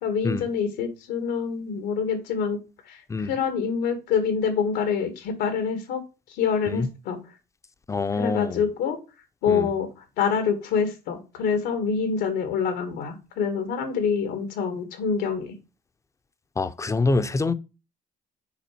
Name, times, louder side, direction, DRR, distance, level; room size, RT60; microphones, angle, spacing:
voice 1, 0.0-2.6 2.9-6.0 6.3-7.2 8.2-9.0 9.4-15.5, left 6 dB, 90° left, 2.1 m, -26 dB
voice 2, 7.9-8.6 9.5-9.7 16.6-17.5, left 3 dB, 20° left, 0.7 m, -25 dB
7.2 x 4.9 x 6.0 m
cardioid pair, 110°, 17 cm